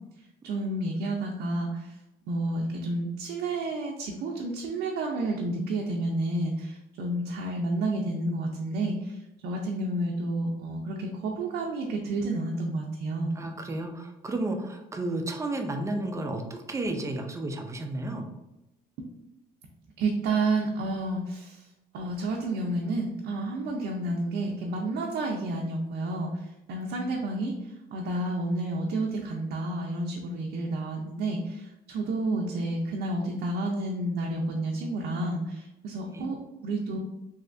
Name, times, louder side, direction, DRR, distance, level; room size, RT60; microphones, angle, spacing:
voice 1, 0.4-1.9 2.3-9.2 9.4-13.3 20.0-21.7 21.9-26.4 26.7-27.5 27.9-37.0, right 2 dB, 70° right, 0 dB, 0.5 m, -30 dB
voice 2, 13.4-18.2 36.1-36.2, right 2 dB, 15° right, 4 dB, 0.4 m, -32 dB
3.1 x 2.7 x 2.5 m, 0.91 s
cardioid pair, 110°, 17 cm